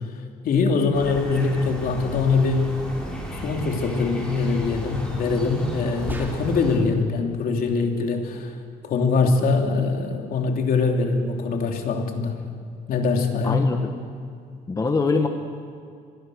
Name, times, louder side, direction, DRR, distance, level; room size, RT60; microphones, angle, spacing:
voice 1, 0.4-2.7 3.3-8.5 8.8-12.4 12.9-13.6, left 4 dB, 60° left, 2 dB, 3.3 m, -23 dB
sound 1, 0.9-6.8, equal, 5° left, 6.4 m, -35 dB
sound 2, 6.1-6.8, right 1 dB, 10° right, 4.0 m, -34 dB
voice 2, 13.4-13.8 14.7-15.3, left 4 dB, 20° left, 4 dB, 1.6 m, -22 dB
26.0 x 20.5 x 6.5 m, 2.3 s
cardioid pair, 110°, 17 cm